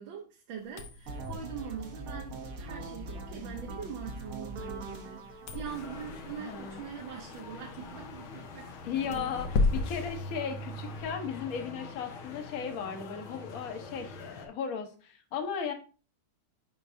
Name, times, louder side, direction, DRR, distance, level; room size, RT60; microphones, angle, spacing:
voice 1, 0.0-9.3, right 8 dB, 75° right, 1.7 m, -43 dB
sound 1, 0.6-11.1, left 3 dB, 70° left, 1.5 m, -37 dB
sound 2, 1.1-7.0, right 2 dB, 50° right, 1.1 m, -42 dB
sound 3, 5.6-14.5, left 2 dB, 85° left, 1.8 m, -43 dB
voice 2, 6.4-6.8 8.8-15.7, left 7 dB, 50° left, 1.3 m, -36 dB
8.2 x 5.2 x 2.6 m
omnidirectional pair, 2.2 m